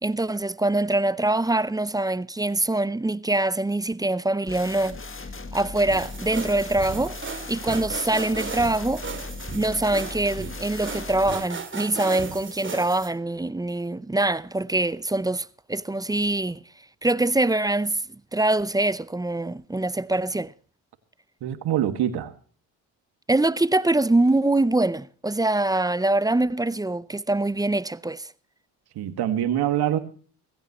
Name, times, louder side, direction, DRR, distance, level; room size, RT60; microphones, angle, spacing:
voice 1, 0.0-5.0 5.5-7.2 7.5-9.0 9.5-16.6 17.0-18.0 18.3-20.5 23.3-28.3, right 2 dB, 10° right, 0.6 m, -24 dB
sound 1, 4.5-11.3, left 3 dB, 30° left, 2.1 m, -37 dB
sound 2, 5.9-13.1, right 4 dB, 30° right, 2.7 m, -36 dB
voice 2, 21.4-22.3 29.0-30.0, right 11 dB, 65° right, 2.0 m, -24 dB
18.5 x 16.0 x 3.0 m
supercardioid pair, 70°, 42 cm